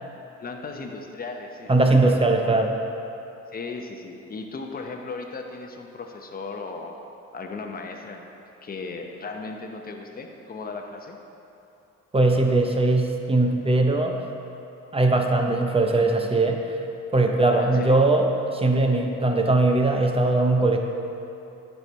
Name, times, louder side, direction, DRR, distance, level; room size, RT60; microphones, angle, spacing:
voice 1, 0.4-1.7 3.5-7.0 7.3-8.3 8.6-11.2 17.5-18.0, left 3 dB, 30° left, 3 dB, 0.8 m, -36 dB
voice 2, 1.7-2.8 12.1-14.2 14.9-16.7 17.1-18.3 18.5-20.8, right 2 dB, 20° right, 3 dB, 0.7 m, -20 dB
9.6 x 4.5 x 4.5 m, 2.9 s
cardioid pair, 90°, 30 cm